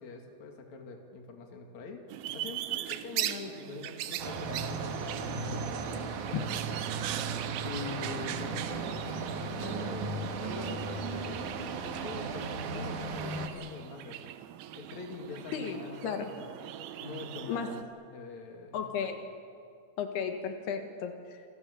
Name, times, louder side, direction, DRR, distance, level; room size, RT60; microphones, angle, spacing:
voice 1, 0.0-2.0 2.3-6.4 6.7-7.4 7.6-14.3 14.7-16.7 17.0-17.8 18.1-18.8, left 4 dB, 50° left, 3 dB, 3.5 m, -44 dB
sound 1, 2.1-17.8, right 13 dB, 85° right, 2.9 m, -41 dB
sound 2, 4.2-13.5, right 4 dB, 60° right, 2.7 m, -36 dB
sound 3, 5.5-11.0, right 1 dB, 30° right, 5.2 m, -49 dB
voice 2, 15.5-16.3 17.5-17.7 18.7-19.3 20.0-21.5, left 7 dB, 85° left, 5 dB, 3.6 m, -34 dB
28.0 x 23.5 x 6.9 m, 2.4 s
omnidirectional pair, 4.5 m